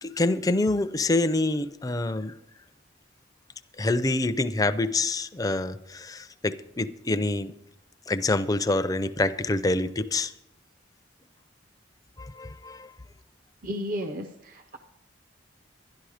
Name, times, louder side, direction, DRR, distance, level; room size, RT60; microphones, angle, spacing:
voice 1, 0.0-2.3 3.8-7.5 8.1-10.3 12.2-12.9, left 2 dB, 20° left, 12 dB, 0.5 m, -26 dB
voice 2, 13.6-14.8, equal, 45° right, 6 dB, 0.6 m, -33 dB
11.5 x 11.5 x 4.9 m, 0.82 s
head